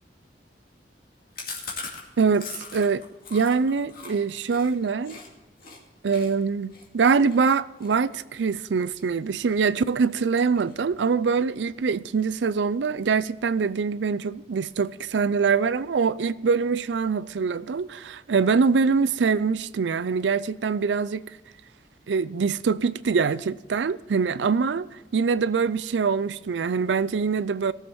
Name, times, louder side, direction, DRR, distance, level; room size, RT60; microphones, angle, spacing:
Chewing mastication, 1.3-5.3 5.6-5.8 6.1-9.1 9.5-9.8 10.1-11.0 11.3-11.4 11.6-11.7 12.0-12.6, left 4 dB, 60° left, 2.3 m, -41 dB
voice 1, 2.2-3.0 3.3-5.2 6.0-21.2 22.1-24.9 25.1-27.7, right 5 dB, 90° right, 0.5 m, -24 dB
18.5 x 7.2 x 4.4 m
head